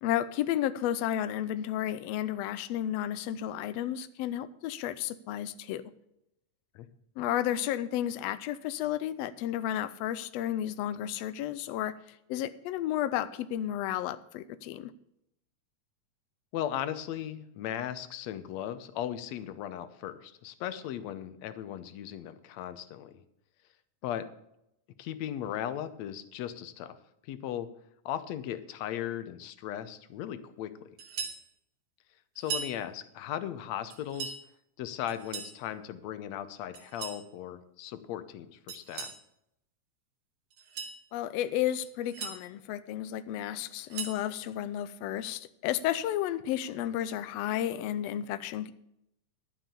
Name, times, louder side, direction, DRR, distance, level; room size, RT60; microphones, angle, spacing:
voice 1, 0.0-5.8 7.2-14.9 41.1-48.7, left 12 dB, 85° left, 13 dB, 1.4 m, -32 dB
voice 2, 16.5-23.2 24.0-24.3 25.0-27.0 27.2-27.7 28.1-30.7 32.4-34.3 34.8-39.1, left 11 dB, 70° left, 12 dB, 1.9 m, -37 dB
sound 1, 31.0-31.4 32.4-32.8 33.9-34.4 35.1-35.6 36.7-37.2 38.7-39.2 40.5-41.0 41.8-42.4 43.6-44.2, right 5 dB, 70° right, 3.2 m, -38 dB
11.5 x 7.6 x 6.8 m, 0.79 s
omnidirectional pair, 3.6 m